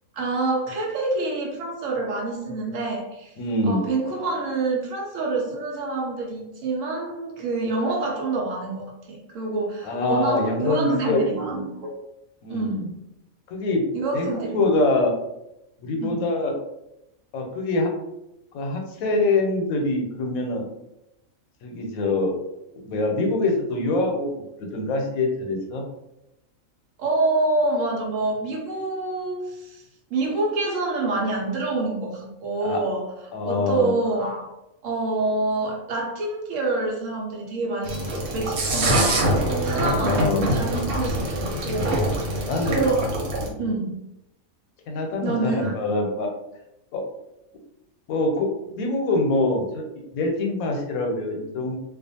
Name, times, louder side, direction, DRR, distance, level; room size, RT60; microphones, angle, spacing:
voice 1, 0.1-3.3 3.6-12.0 12.5-13.0 13.9-14.8 16.0-16.3 27.0-29.8 30.1-33.1 33.4-34.5 34.8-41.9 42.6-43.1 43.6-43.9 45.2-45.7, right 2 dB, 70° right, -1 dB, 1.0 m, -27 dB
voice 2, 3.4-3.8 9.8-11.2 12.4-12.8 13.5-13.9 14.1-15.1 15.8-16.5 17.3-17.9 18.5-20.7 21.6-22.4 22.8-24.3 24.6-25.8 32.6-32.8 33.3-33.9 39.5-40.4 42.1-42.9 43.4-43.8 44.9-46.3 46.9-47.0 48.1-48.5 48.8-49.8 50.1-51.8, left 2 dB, 90° left, 2 dB, 1.0 m, -24 dB
sound 1, 37.8-43.5, right 1 dB, 90° right, 1.2 m, -24 dB
2.4 x 2.3 x 2.7 m, 0.87 s
omnidirectional pair, 1.4 m